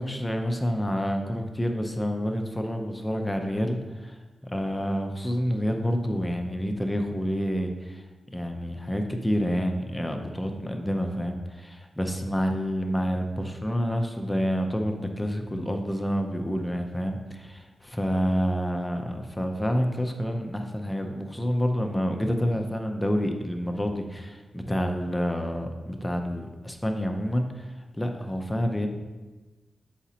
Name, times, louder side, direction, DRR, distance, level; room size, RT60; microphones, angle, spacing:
voice 1, 0.0-8.0 8.3-28.9, equal, 10° left, 4 dB, 0.5 m, -28 dB
7.1 x 4.9 x 2.8 m, 1.3 s
wide cardioid pair, 125°, 0 cm